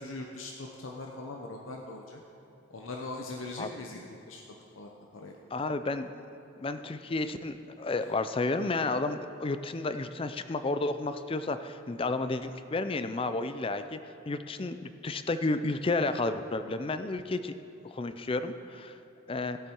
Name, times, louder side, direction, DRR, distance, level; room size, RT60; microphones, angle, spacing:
voice 1, 0.0-2.2 2.7-4.4 4.8-5.3, left 2 dB, 90° left, 1 dB, 0.9 m, -41 dB
voice 2, 5.5-6.1 6.6-14.0 14.3-17.5 17.8-19.0 19.3-19.6, left 3 dB, 30° left, 10 dB, 0.4 m, -31 dB
16.5 x 8.3 x 4.5 m, 2.7 s
head